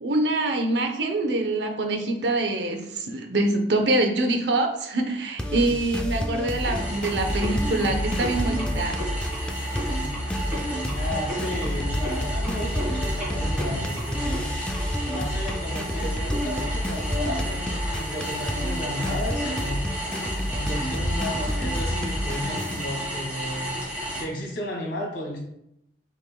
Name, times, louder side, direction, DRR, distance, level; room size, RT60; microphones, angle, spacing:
voice 1, 0.0-9.0, right 2 dB, 75° right, 5 dB, 0.7 m, -25 dB
sound 1, 5.4-22.9, equal, 5° left, 0.4 m, -29 dB
sound 2, 6.6-24.2, equal, 10° right, 1.4 m, -32 dB
voice 2, 10.9-14.4 15.1-19.9 20.4-23.7 24.2-25.4, left 1 dB, 80° left, -2 dB, 1.5 m, -34 dB
5.9 x 3.8 x 2.2 m, 0.79 s
head